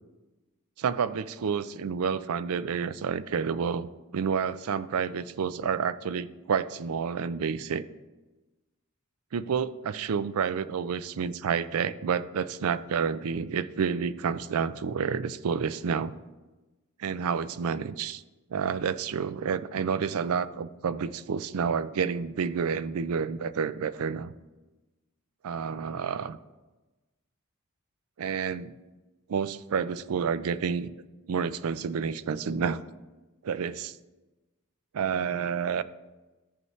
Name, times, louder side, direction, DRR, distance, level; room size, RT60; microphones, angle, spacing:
voice 1, 0.8-7.8 9.3-16.2 17.0-18.2 18.5-24.3 25.4-26.4 28.2-28.7 29.3-30.9 31.3-32.8 33.4-34.0 34.9-35.8, right 6 dB, 75° right, 15 dB, 0.4 m, -29 dB
13.5 x 5.5 x 3.2 m, 1.1 s
head